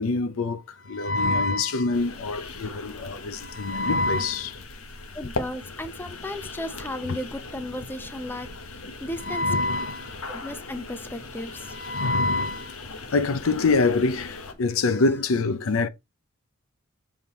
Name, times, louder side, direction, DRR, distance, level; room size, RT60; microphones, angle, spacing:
voice 1, 0.0-4.6 9.2-10.1 11.6-12.7 13.1-15.9, left 3 dB, 70° left, 0.6 m, -25 dB
sound 1, 1.9-14.5, left 3 dB, 90° left, 1.2 m, -39 dB
voice 2, 5.1-9.5 10.3-11.7, left 1 dB, 10° left, 0.7 m, -35 dB
6.8 x 3.9 x 4.2 m
head